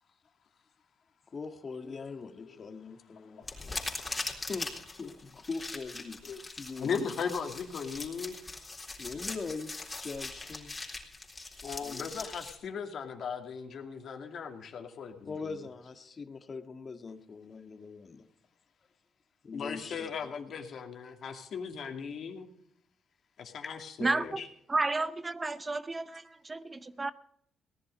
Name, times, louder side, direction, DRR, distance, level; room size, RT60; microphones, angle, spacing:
voice 1, 1.3-3.4 4.5-4.7 5.0-6.2 6.6-7.1 9.0-9.7 10.0-10.7 11.8-12.1 15.3-18.2 19.4-20.1 23.6-23.8, left 4 dB, 40° left, 8 dB, 1.6 m, -41 dB
voice 2, 1.8-3.8 5.0-5.1 6.2-6.4 6.8-8.4 11.6-15.7 19.5-22.5 23.4-24.5, left 6 dB, 60° left, 4 dB, 2.4 m, -38 dB
sound 1, 3.4-12.5, left 3 dB, 20° left, 3.9 m, -41 dB
voice 3, 24.0-24.4 24.7-27.1, right 3 dB, 25° right, 14 dB, 0.7 m, -32 dB
18.0 x 11.0 x 5.1 m, 0.71 s
cardioid pair, 90°, 0 cm